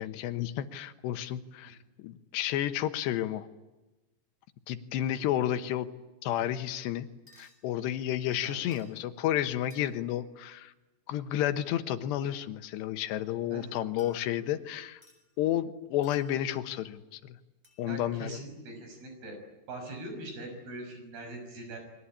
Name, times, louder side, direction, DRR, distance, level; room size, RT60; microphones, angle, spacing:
voice 1, 0.0-3.5 4.7-5.9 6.2-7.1 7.4-10.7 11.1-15.0 15.4-17.4 17.8-18.4, left 12 dB, 85° left, 10 dB, 3.3 m, -31 dB
sound 1, 7.3-7.6 8.7-9.0 9.7-10.2 14.0-14.6 15.0-15.2 16.0-16.5 17.6-17.9, left 2 dB, 10° right, 7.0 m, -59 dB
voice 2, 17.9-19.4 19.7-21.8, right 2 dB, 65° right, 5 dB, 8.1 m, -42 dB
29.0 x 23.5 x 8.7 m, 1.1 s
omnidirectional pair, 4.8 m